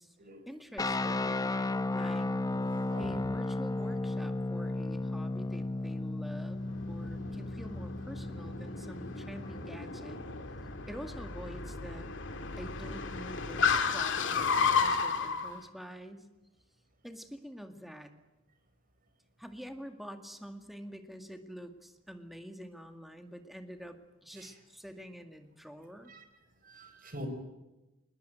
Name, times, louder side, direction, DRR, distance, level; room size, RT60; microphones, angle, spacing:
voice 1, 0.5-2.3 3.0-10.2 10.9-12.1 12.6-16.3 17.0-18.1 19.4-26.1, equal, ahead, 6 dB, 2.1 m, -47 dB
sound 1, 0.8-9.7, left 2 dB, 20° left, 0.9 m, -34 dB
voice 2, 2.6-3.3 24.3-24.6 26.1-26.2 26.6-27.3, equal, 45° right, 8 dB, 4.9 m, -44 dB
Car, 6.6-15.5, left 5 dB, 65° left, 2.4 m, -33 dB
21.0 x 21.0 x 9.2 m, 1.1 s
head